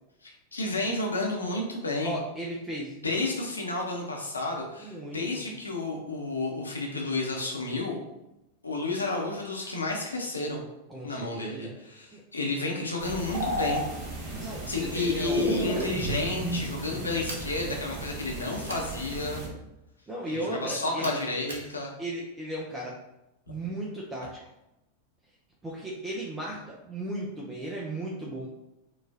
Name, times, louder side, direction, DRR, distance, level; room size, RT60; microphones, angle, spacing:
voice 1, 0.2-2.1 3.0-8.0 8.6-10.6 11.0-13.8 14.7-19.4 20.3-21.9, left 2 dB, 80° left, -1 dB, 0.8 m, -31 dB
voice 2, 2.0-2.9 4.8-5.5 10.9-11.7 12.1-12.2 14.4-15.9 16.9-17.1 20.1-21.2 22.0-22.9 23.5-24.4 25.6-28.5, right 1 dB, 15° right, -3 dB, 0.6 m, -36 dB
sound 1, 13.0-19.5, right 1 dB, 30° right, 1.2 m, -33 dB
sound 2, 17.3-17.5 18.7-18.9 21.0-21.7, right 2 dB, 60° right, 0.8 m, -40 dB
4.6 x 2.4 x 2.7 m, 0.90 s
figure-of-eight pair, 90°, 0 cm